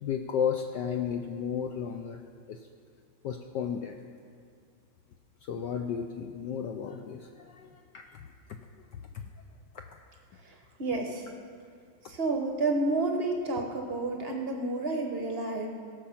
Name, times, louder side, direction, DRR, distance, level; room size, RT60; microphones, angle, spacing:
voice 1, 0.0-2.2 2.5-2.6 3.2-4.0 5.4-8.2 8.5-8.6, left 7 dB, 80° left, 5 dB, 1.0 m, -33 dB
voice 2, 10.8-11.3 12.1-15.7, right 2 dB, 50° right, 2 dB, 0.7 m, -30 dB
17.0 x 6.8 x 5.8 m, 2.2 s
omnidirectional pair, 2.4 m